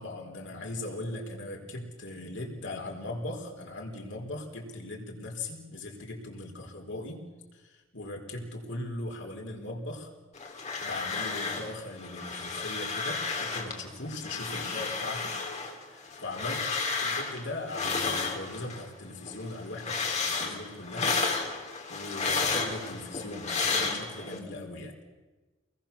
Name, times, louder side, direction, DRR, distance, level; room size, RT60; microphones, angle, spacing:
voice 1, 0.0-7.3 7.5-10.1 10.8-15.4 15.9-21.2 21.9-24.9, left 2 dB, 60° left, 1 dB, 4.7 m, -39 dB
sound 1, 10.4-11.7 12.0-13.8 14.1-18.9 19.2-24.4, left 4 dB, 35° left, 3.3 m, -32 dB
27.5 x 21.5 x 7.3 m, 1.2 s
head